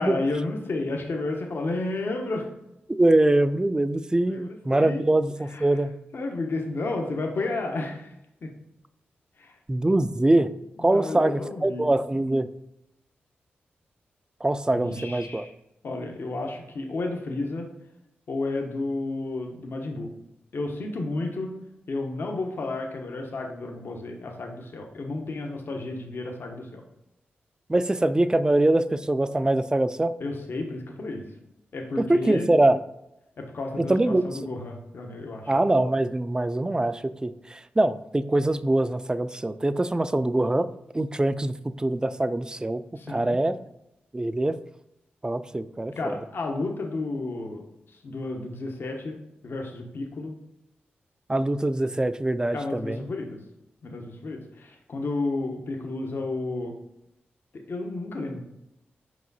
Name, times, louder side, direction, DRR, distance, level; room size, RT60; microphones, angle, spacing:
voice 1, 0.0-2.5 4.3-5.0 5.5-5.8 6.1-8.1 8.4-8.5 9.4-9.6 10.8-11.9 14.8-15.5 15.8-17.7 18.3-20.1 20.5-21.5 21.9-26.8 30.2-31.3 31.7-32.5 33.4-35.6 43.0-43.4 46.0-50.3 52.5-53.4 53.8-56.7 57.7-58.4, left 2 dB, 65° left, 2 dB, 1.0 m, -32 dB
voice 2, 2.9-5.9 9.7-10.5 10.8-12.5 14.4-15.5 27.7-30.1 32.0-32.8 33.8-34.2 35.5-40.7 40.9-42.8 43.1-43.6 44.1-44.6 45.2-46.2 51.3-53.0, right 1 dB, 20° right, 13 dB, 0.4 m, -23 dB
5.2 x 4.8 x 4.0 m, 0.86 s
cardioid pair, 55°, 4 cm